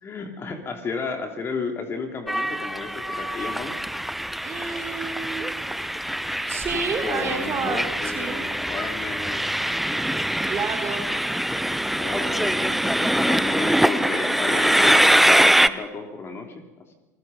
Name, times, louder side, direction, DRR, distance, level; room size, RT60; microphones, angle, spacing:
voice 1, 0.0-3.8 6.5-9.6 11.9-17.0, left 4 dB, 25° left, 4 dB, 3.1 m, -33 dB
Train, 2.3-15.7, right 1 dB, ahead, 0.7 m, -23 dB
voice 2, 4.4-5.6 6.5-8.4 10.4-11.1, right 5 dB, 30° right, 3 dB, 3.7 m, -30 dB
28.0 x 21.0 x 5.4 m, 1.1 s
figure-of-eight pair, 75°, 9 cm